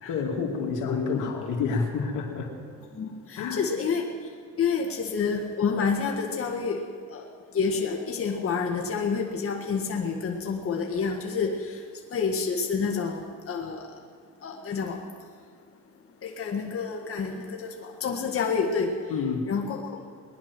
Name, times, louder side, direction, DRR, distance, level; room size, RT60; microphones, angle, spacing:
voice 1, 0.1-2.5 3.4-3.6 19.1-19.5, left 5 dB, 90° left, 1 dB, 2.5 m, -28 dB
voice 2, 0.9-1.3 3.0-4.1 4.6-6.8 7.1-7.2 7.5-11.8 12.1-13.9 14.4-15.0 16.2-19.0 19.5-19.9, left 5 dB, 45° left, 1 dB, 1.8 m, -28 dB
20.5 x 10.5 x 6.1 m, 2.1 s
cardioid pair, 90°, 30 cm